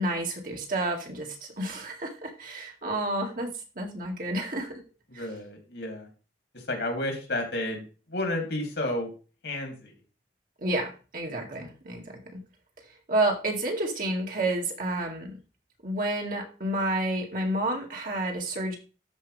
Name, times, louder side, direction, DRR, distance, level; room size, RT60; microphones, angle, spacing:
voice 1, 0.0-3.5 3.8-4.8 5.1-5.2 10.6-12.4 13.1-15.4 15.8-18.8, right 1 dB, 50° right, 1 dB, 2.1 m, -30 dB
voice 2, 5.1-6.1 6.5-9.1 9.4-9.9, left 1 dB, 70° left, 3 dB, 3.1 m, -31 dB
13.0 x 5.0 x 3.4 m, 0.34 s
head